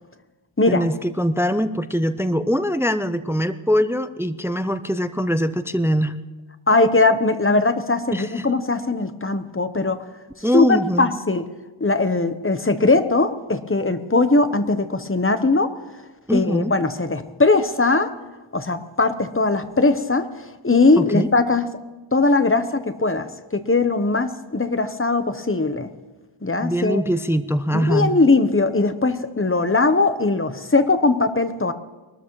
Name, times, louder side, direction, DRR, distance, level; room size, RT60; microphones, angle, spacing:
voice 1, 0.7-6.2 8.1-8.5 10.4-11.1 16.3-16.7 21.0-21.3 26.6-28.1, equal, 5° right, 12 dB, 0.5 m, -22 dB
voice 2, 6.7-10.0 10.5-11.4 11.8-15.7 16.3-18.1 18.5-21.6 22.1-25.9 26.4-27.0 27.7-31.7, left 3 dB, 25° left, 10 dB, 0.9 m, -20 dB
23.0 x 13.0 x 3.1 m, 1.2 s
wide cardioid pair, 45°, 47 cm